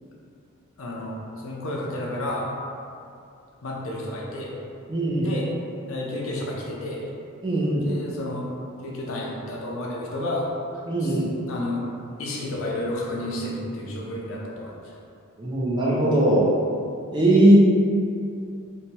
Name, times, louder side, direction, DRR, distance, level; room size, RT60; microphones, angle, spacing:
voice 1, 0.8-2.5 3.6-4.5 5.2-5.5 5.9-7.0 7.8-8.4 8.8-10.5 11.0-11.2 11.5-11.8 12.2-14.8, left 1 dB, 70° left, -3 dB, 0.5 m, -31 dB
voice 2, 4.9-5.3 7.4-7.9 10.9-11.2 15.4-16.5 17.1-17.6, right 1 dB, 20° right, -5 dB, 0.4 m, -19 dB
3.0 x 2.2 x 2.7 m, 2.5 s
head